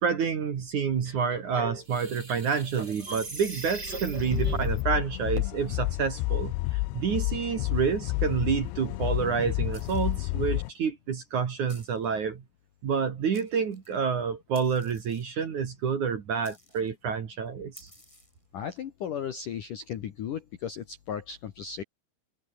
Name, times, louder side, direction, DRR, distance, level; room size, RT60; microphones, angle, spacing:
voice 1, 0.0-12.4 12.8-17.9, right 6 dB, 50° right, 2.9 m, -29 dB
sound 1, 1.1-4.8, right 3 dB, 20° right, 5.4 m, -37 dB
sound 2, 4.2-10.7, left 21 dB, 85° left, 2.7 m, -30 dB
sound 3, 9.7-10.3 11.7-12.1 12.9-13.0 13.3-14.0 14.5-15.4 16.4-16.9 17.7-18.4, left 1 dB, 5° left, 6.2 m, -54 dB
voice 2, 18.5-21.8, left 8 dB, 60° left, 2.3 m, -35 dB
omnidirectional pair, 5.7 m